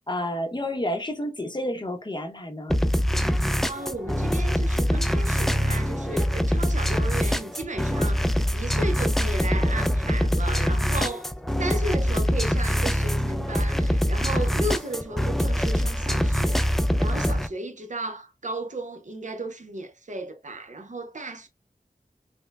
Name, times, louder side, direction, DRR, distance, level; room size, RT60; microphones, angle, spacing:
voice 1, 0.1-2.8, left 1 dB, 30° left, 0.8 m, -30 dB
sound 1, 2.7-17.5, equal, ahead, 0.4 m, -24 dB
voice 2, 3.7-11.3 11.6-21.5, right 2 dB, 55° right, 0.7 m, -34 dB
5.2 x 2.1 x 2.2 m
wide cardioid pair, 55°, 15 cm